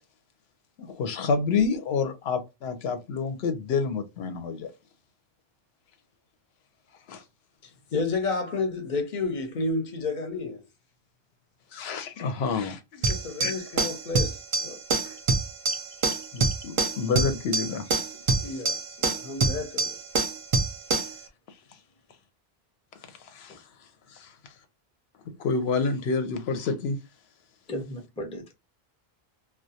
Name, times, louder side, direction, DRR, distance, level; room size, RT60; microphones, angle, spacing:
voice 1, 0.8-4.7 7.1-7.2 11.7-13.1 13.4-13.5 16.3-17.9 18.4-18.5 21.0-21.1 23.1-23.6 24.1-24.3 25.3-27.0, left 5 dB, 85° left, 0.8 m, -28 dB
voice 2, 7.9-10.6 13.1-15.2 18.4-20.0, left 3 dB, 55° left, 0.7 m, -31 dB
sound 1, 13.0-21.2, right 3 dB, 50° right, 0.4 m, -26 dB
voice 3, 27.7-28.5, equal, 10° left, 0.5 m, -36 dB
2.3 x 2.1 x 2.6 m
omnidirectional pair, 1.0 m